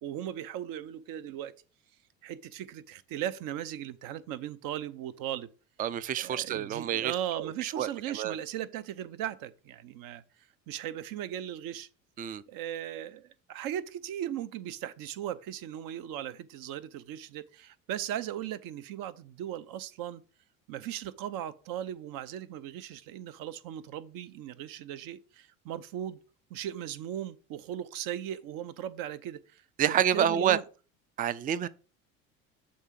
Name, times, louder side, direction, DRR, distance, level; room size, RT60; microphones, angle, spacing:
voice 1, 0.0-1.5 2.2-5.5 6.2-10.2 10.7-11.9 12.5-20.2 20.7-26.2 26.5-30.6, right 11 dB, 55° right, 0.7 m, -37 dB
voice 2, 5.8-8.4 12.2-12.4 29.8-30.6 31.2-31.7, right 9 dB, 20° right, 0.4 m, -28 dB
7.1 x 3.7 x 5.2 m
hypercardioid pair, 70°, 40 cm